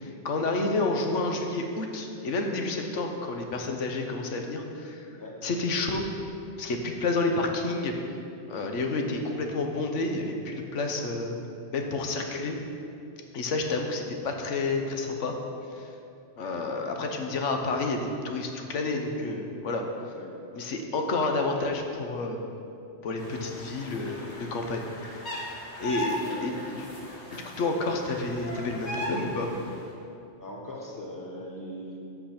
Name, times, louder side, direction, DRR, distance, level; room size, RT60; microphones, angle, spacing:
voice 1, 0.0-5.1 5.4-6.1 6.6-7.9 8.5-11.4 11.7-12.6 13.3-15.4 15.7-15.9 16.4-19.9 20.5-22.4 23.0-24.8 25.8-26.9 27.3-29.5, left 3 dB, 80° left, 3 dB, 1.2 m, -30 dB
sound 1, 23.2-29.8, left 1 dB, 65° left, 1.9 m, -38 dB
voice 2, 30.4-32.0, equal, 15° left, -2 dB, 1.2 m, -40 dB
8.0 x 6.4 x 5.9 m, 2.7 s
omnidirectional pair, 1.2 m